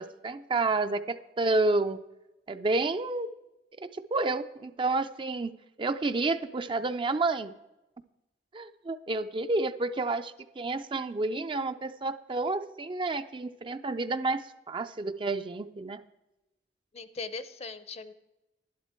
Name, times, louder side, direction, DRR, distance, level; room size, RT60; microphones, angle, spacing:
voice 1, 0.0-2.0 2.5-3.3 3.9-5.5 5.8-7.5 8.5-16.0, right 3 dB, 30° right, 10 dB, 0.4 m, -30 dB
voice 2, 16.9-18.1, left 4 dB, 35° left, 14 dB, 0.6 m, -39 dB
12.0 x 11.5 x 4.4 m, 0.99 s
head